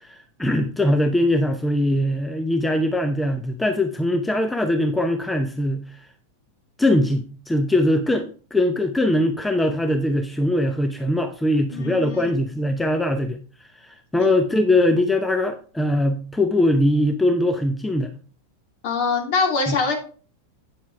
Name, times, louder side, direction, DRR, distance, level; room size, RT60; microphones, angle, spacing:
voice 1, 0.0-6.0 6.8-13.4 13.8-18.1 19.7-19.8, left 1 dB, 5° left, 0.7 m, -21 dB
voice 2, 11.7-12.3 18.8-20.0, left 4 dB, 45° left, 2.6 m, -23 dB
8.9 x 7.2 x 3.3 m
figure-of-eight pair, 90°, 0 cm